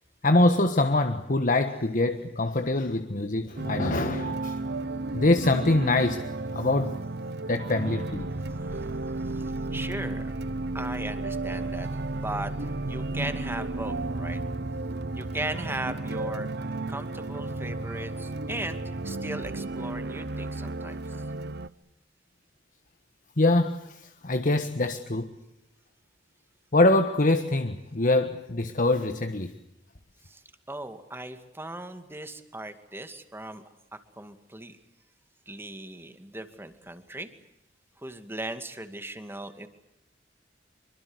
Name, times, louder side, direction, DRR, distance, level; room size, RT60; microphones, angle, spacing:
voice 1, 0.2-4.6 5.1-6.3 6.5-7.0 7.5-8.2 23.4-25.3 26.7-29.5, left 2 dB, 45° left, 1.5 m, -24 dB
sound 1, 3.6-21.7, right 2 dB, 60° right, 0.9 m, -33 dB
voice 2, 9.2-10.3 10.7-14.4 15.1-16.5 16.9-21.2 30.2-33.6 33.9-34.8 35.5-37.3 38.0-39.7, right 2 dB, 15° right, 2.3 m, -38 dB
26.5 x 24.0 x 8.1 m
head